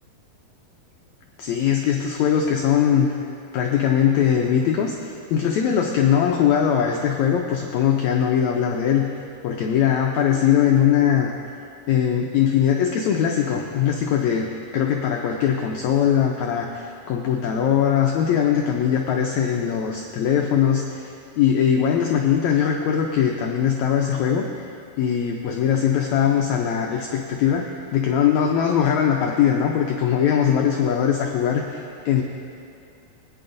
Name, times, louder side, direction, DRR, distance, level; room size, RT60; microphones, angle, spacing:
voice 1, 1.4-3.1 3.5-4.9 5.3-9.1 9.4-11.3 11.9-24.5 25.0-27.6 27.9-32.2, left 8 dB, 90° left, 2 dB, 1.6 m, -21 dB
19.5 x 9.3 x 2.6 m, 2.5 s
omnidirectional pair, 4.0 m